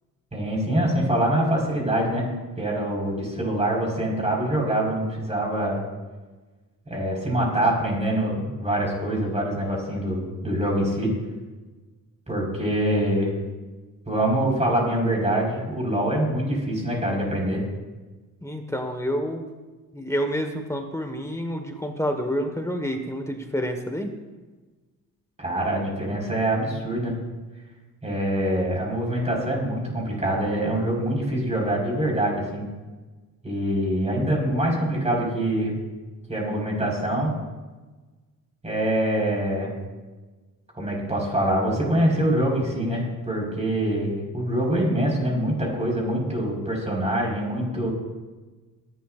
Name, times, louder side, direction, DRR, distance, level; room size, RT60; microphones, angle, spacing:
voice 1, 0.3-2.3 2.6-5.8 6.9-11.1 12.3-13.4 14.1-17.6 25.4-27.2 28.0-32.6 33.4-35.7 36.3-37.3 38.6-39.7 40.7-47.9, right 1 dB, 20° right, -2 dB, 4.7 m, -24 dB
voice 2, 18.4-19.5 19.9-24.1, equal, 10° left, 4 dB, 1.4 m, -28 dB
23.5 x 11.5 x 2.5 m, 1.3 s
cardioid pair, 120°, 34 cm